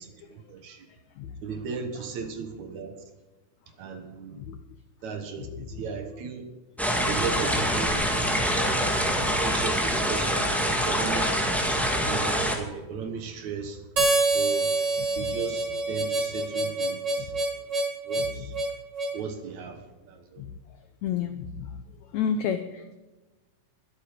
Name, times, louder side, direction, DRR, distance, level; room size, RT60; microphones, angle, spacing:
voice 1, 1.4-3.0 3.8-4.4 5.0-5.5 5.8-6.5 7.1-8.0 8.9-11.3 11.9-13.8 14.3-14.7 15.2-17.3 18.1-18.5 19.1-19.8 20.3-20.4, right 6 dB, 60° right, 7 dB, 2.2 m, -36 dB
voice 2, 5.4-5.8 6.1-6.2 8.8-8.9 12.0-12.1 14.0-14.1 15.2-15.3 18.2-18.5 20.4-20.5 21.0-21.7 22.1-22.9, left 7 dB, 85° left, 10 dB, 1.6 m, -31 dB
sound 1, 6.8-12.6, equal, ahead, 0.6 m, -25 dB
Harmonica, 14.0-19.2, right 2 dB, 40° right, 1.9 m, -26 dB
21.5 x 8.5 x 5.0 m, 1.2 s
omnidirectional pair, 4.2 m